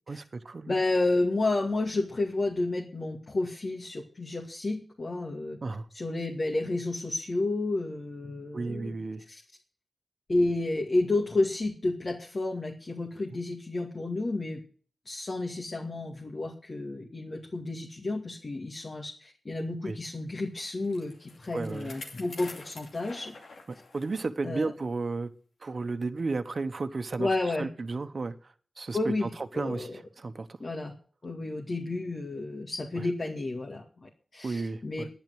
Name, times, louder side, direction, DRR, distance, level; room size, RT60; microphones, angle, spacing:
voice 1, 0.1-0.8 5.6-5.9 8.5-9.2 19.8-20.0 21.5-22.0 23.9-25.3 25.6-29.1 29.5-30.5 33.0-33.1 34.4-35.1, right 3 dB, 60° right, 9 dB, 1.1 m, -33 dB
voice 2, 0.7-5.6 5.9-9.0 9.3-9.4 10.3-14.6 15.0-23.3 24.4-24.7 27.2-27.7 28.9-30.0 30.6-30.9 31.2-35.0, left 2 dB, 55° left, 0 dB, 2.3 m, -31 dB
Bicycle, 20.4-24.3 24.7-24.8 25.6-25.7, left 3 dB, 90° left, 2.7 m, -47 dB
10.5 x 10.5 x 7.9 m, 0.44 s
cardioid pair, 50°, 0 cm